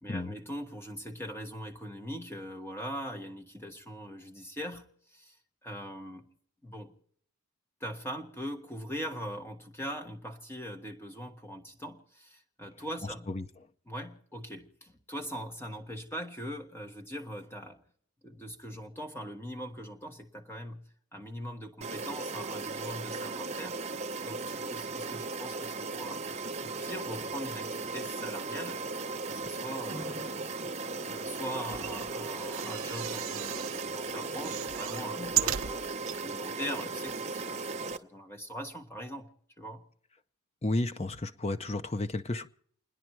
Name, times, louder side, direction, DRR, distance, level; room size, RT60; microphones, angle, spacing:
voice 1, 0.0-5.4 5.6-6.3 6.6-6.9 7.8-13.3 13.9-17.8 18.2-20.8 21.1-23.8 24.2-26.2 26.6-28.8 29.3-30.4 31.0-35.8 36.2-39.3 39.6-39.8, equal, 10° left, 1.7 m, -41 dB
voice 2, 13.0-13.5 40.6-42.5, left 2 dB, 30° left, 0.7 m, -32 dB
sound 1, 21.8-38.0, right 3 dB, 30° right, 0.9 m, -37 dB
sound 2, 31.7-33.9 34.2-36.2 36.8-36.9 37.1-37.2, right 12 dB, 60° right, 0.6 m, -35 dB
30.0 x 10.0 x 4.6 m
head